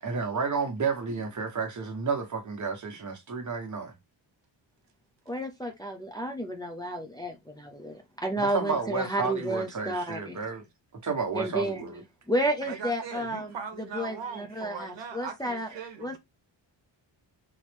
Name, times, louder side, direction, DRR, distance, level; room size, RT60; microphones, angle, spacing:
voice 1, 0.0-3.9 8.4-10.7 10.9-12.0, right 5 dB, 40° right, 1.4 m, -31 dB
voice 2, 5.3-10.4 11.3-11.8 12.3-13.5 13.9-15.7 16.0-16.2, right 1 dB, 10° left, 0.7 m, -31 dB
voice 3, 12.7-16.2, right 6 dB, 65° right, 1.2 m, -39 dB
4.6 x 3.1 x 3.5 m
wide cardioid pair, 145°, 47 cm